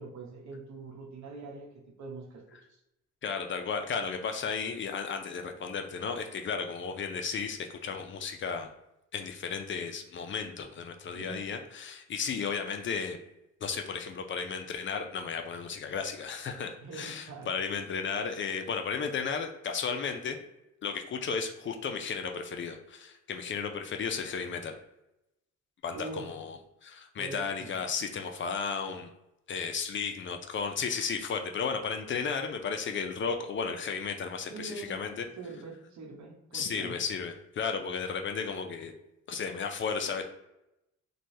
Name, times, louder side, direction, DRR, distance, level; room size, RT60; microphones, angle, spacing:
voice 1, 0.0-2.4 2.7-2.8 11.1-11.4 16.8-17.5 25.9-26.3 27.2-27.8 34.5-34.9 35.4-37.0, right 3 dB, 70° right, 0 dB, 0.9 m, -43 dB
voice 2, 3.2-8.7 9.1-13.2 13.6-20.4 20.8-24.8 25.8-29.1 29.5-35.3 36.5-38.9 39.3-40.2, left 5 dB, 40° left, 5 dB, 0.4 m, -34 dB
3.1 x 2.3 x 2.6 m, 0.88 s
cardioid pair, 90°, 30 cm